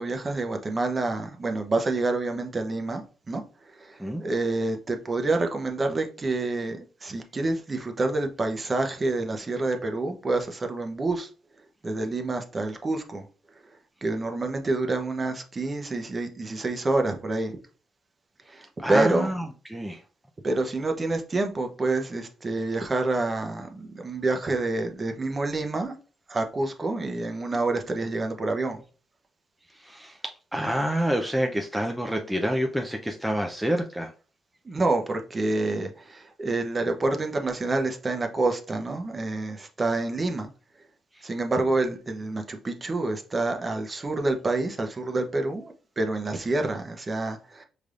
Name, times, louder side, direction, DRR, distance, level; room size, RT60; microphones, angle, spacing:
voice 1, 0.0-11.3 11.8-13.3 14.0-17.6 18.5-19.3 20.4-25.9 26.3-28.8 34.6-40.5 41.2-47.6, right 2 dB, 30° right, 0.8 m, -28 dB
voice 2, 18.8-20.0 29.8-34.1, equal, 5° right, 0.5 m, -28 dB
5.1 x 3.3 x 2.5 m
cardioid pair, 90°, 0 cm